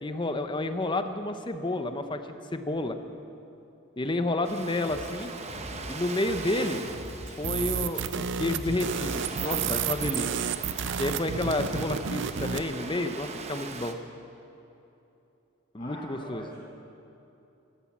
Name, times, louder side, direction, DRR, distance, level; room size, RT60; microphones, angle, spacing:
voice 1, 0.0-2.2 2.5-3.0 4.0-5.3 5.9-6.8 7.4-10.3 11.0-14.0 15.7-16.5, left 2 dB, 25° left, 8 dB, 0.8 m, -30 dB
Ocean, 4.4-13.9, right 3 dB, 30° right, 0.9 m, -40 dB
Drum kit, 4.9-10.4, equal, 65° left, 4.8 m, -44 dB
sound 1, 7.4-12.7, right 7 dB, 60° right, 0.5 m, -31 dB
voice 2, 15.7-16.6, equal, 45° left, -9 dB, 4.1 m, -43 dB
14.0 x 13.0 x 7.4 m, 2.9 s
head